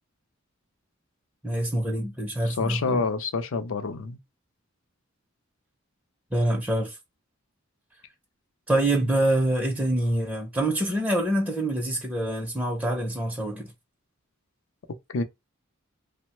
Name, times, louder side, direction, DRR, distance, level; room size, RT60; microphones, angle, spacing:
voice 1, 1.4-3.1 6.3-7.0 8.7-13.7, right 1 dB, 5° right, 0.5 m, -25 dB
voice 2, 2.4-4.2 15.1-15.2, left 4 dB, 65° left, 0.5 m, -27 dB
3.0 x 2.1 x 2.9 m
head